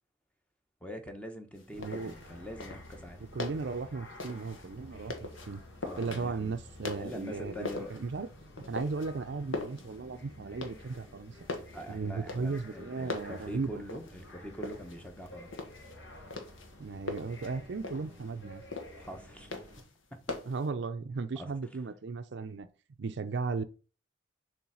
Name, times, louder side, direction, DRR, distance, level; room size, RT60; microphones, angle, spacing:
voice 1, 0.8-3.2 5.8-6.6 7.0-7.9 11.7-15.5 18.9-19.5 21.4-21.5, equal, 5° left, 0.9 m, -44 dB
sound 1, 1.5-20.7, left 2 dB, 85° left, 1.3 m, -43 dB
sound 2, 1.7-19.8, left 1 dB, 65° left, 1.6 m, -51 dB
voice 2, 1.8-2.1 3.3-5.6 6.0-8.3 8.6-11.4 11.9-13.8 16.8-18.6 20.5-22.7 23.0-23.6, right 4 dB, 60° right, 0.5 m, -36 dB
7.1 x 3.3 x 6.2 m
head